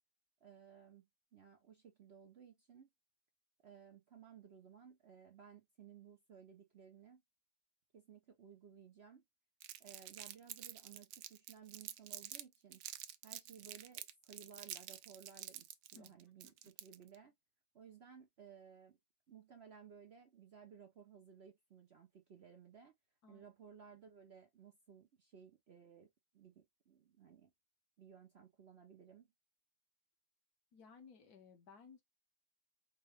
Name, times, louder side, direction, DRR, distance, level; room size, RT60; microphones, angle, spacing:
voice 1, 0.4-2.9 3.6-7.2 7.9-9.2 9.8-12.8 13.2-15.7 15.9-17.3 17.7-19.0 19.3-22.9 23.3-27.5 28.0-29.3, right 7 dB, 55° right, 0.7 m, -59 dB
Crumpling crinkling, 9.6-12.4 12.7-17.2, right 12 dB, 75° right, 1.1 m, -49 dB
voice 2, 30.7-32.0, left 5 dB, 60° left, 1.6 m, -59 dB
4.7 x 2.2 x 3.3 m
omnidirectional pair, 1.9 m